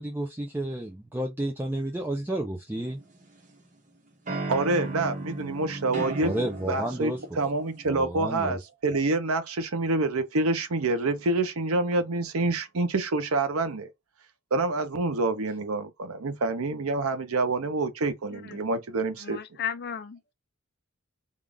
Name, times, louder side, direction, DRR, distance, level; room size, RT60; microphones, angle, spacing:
voice 1, 0.0-3.0 6.2-7.2 7.9-8.6, right 1 dB, 10° right, 0.4 m, -31 dB
sound 1, 2.7-3.6 4.3-7.9, right 2 dB, 35° right, 1.1 m, -35 dB
voice 2, 4.5-6.4 6.7-13.9 14.5-19.4, right 2 dB, 80° right, 0.8 m, -27 dB
voice 3, 19.2-20.3, left 8 dB, 50° left, 0.6 m, -35 dB
3.7 x 2.4 x 3.4 m
head